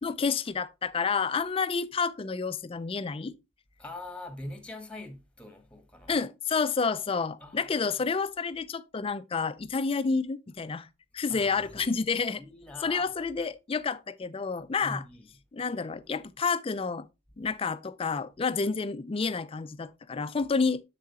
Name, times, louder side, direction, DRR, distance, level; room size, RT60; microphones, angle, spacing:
voice 1, 0.0-3.3 6.1-10.9 11.1-12.4 12.8-15.0 15.5-17.1 17.4-20.8, left 5 dB, 25° left, 0.4 m, -29 dB
voice 2, 3.8-6.1 7.4-8.0 11.3-11.9 12.4-13.1 14.8-15.3, left 1 dB, 5° left, 1.2 m, -43 dB
7.5 x 7.2 x 2.9 m
head